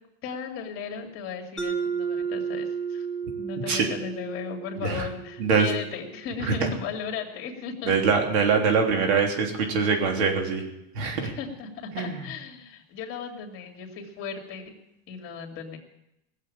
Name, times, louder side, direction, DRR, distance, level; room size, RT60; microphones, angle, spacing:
voice 1, 0.2-3.1 3.4-7.9 9.7-9.8 11.2-11.7 12.0-14.8 15.1-15.8, left 6 dB, 40° left, 3 dB, 2.7 m, -36 dB
Mallet percussion, 1.6-6.1, right 6 dB, ahead, 2.6 m, -33 dB
voice 2, 7.8-10.6 10.9-11.3 11.9-12.2, right 5 dB, 80° right, 2 dB, 3.3 m, -23 dB
18.5 x 7.5 x 8.7 m, 0.85 s
supercardioid pair, 145°, 32 cm